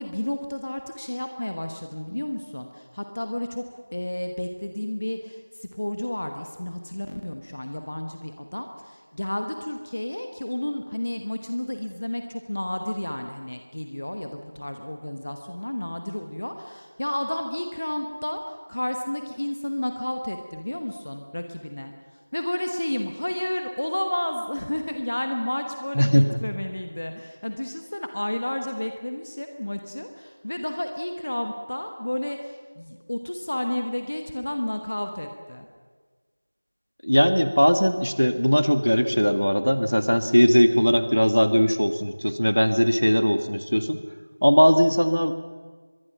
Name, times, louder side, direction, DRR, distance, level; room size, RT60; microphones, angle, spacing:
voice 1, 0.0-35.7, left 1 dB, 25° left, 5 dB, 1.1 m, -31 dB
voice 2, 26.0-26.4 37.0-44.0 44.4-45.3, equal, 70° left, 9 dB, 2.0 m, -19 dB
24.0 x 22.0 x 5.8 m, 1.4 s
figure-of-eight pair, 175°, 0 cm